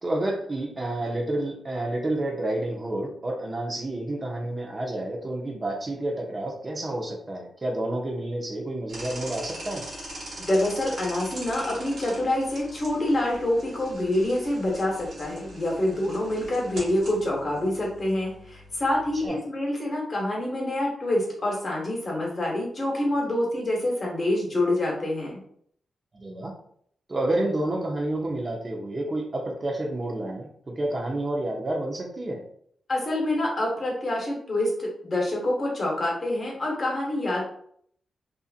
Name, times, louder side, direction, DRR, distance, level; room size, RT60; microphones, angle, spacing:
voice 1, 0.0-9.9 19.2-19.4 26.1-26.6 27.1-32.4, right 1 dB, 30° right, 1 dB, 0.6 m, -29 dB
sound 1, 8.9-19.3, right 1 dB, 75° right, 1.3 m, -41 dB
voice 2, 10.4-25.4 32.9-37.4, left 1 dB, 40° left, -2 dB, 1.0 m, -26 dB
2.7 x 2.5 x 2.4 m, 0.65 s
wide cardioid pair, 110°, 0 cm